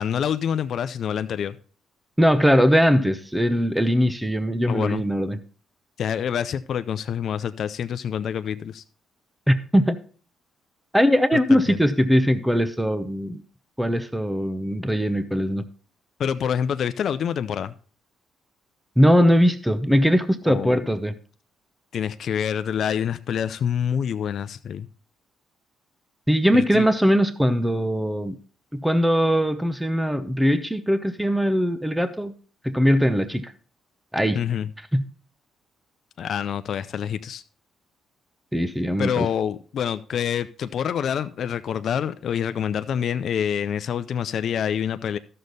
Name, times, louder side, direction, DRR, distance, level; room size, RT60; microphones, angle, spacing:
voice 1, 0.0-1.6 4.7-5.0 6.0-8.8 11.5-11.8 16.2-17.7 20.4-20.9 21.9-24.9 26.5-26.9 34.3-34.7 36.2-37.4 39.0-45.2, left 8 dB, 65° left, 0.5 m, -26 dB
voice 2, 2.2-5.4 9.5-10.0 10.9-13.4 13.8-15.6 19.0-21.1 26.3-28.4 28.7-32.3 32.6-33.5 34.1-34.4 34.9-35.1 38.5-39.3, equal, 5° right, 0.8 m, -20 dB
12.5 x 6.6 x 4.0 m
cardioid pair, 90°, 0 cm